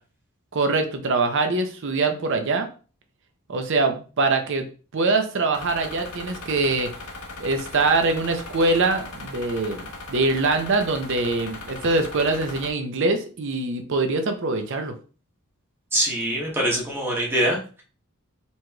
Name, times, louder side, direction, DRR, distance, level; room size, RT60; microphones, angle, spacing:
voice 1, 0.5-2.7 3.5-4.7 4.9-6.9 7.4-15.0, right 3 dB, 60° right, 6 dB, 0.6 m, -23 dB
sound 1, 5.5-12.7, left 2 dB, 90° left, 0.9 m, -38 dB
voice 2, 15.9-17.8, right 1 dB, 10° right, -3 dB, 1.0 m, -24 dB
4.1 x 3.1 x 2.3 m, 0.36 s
head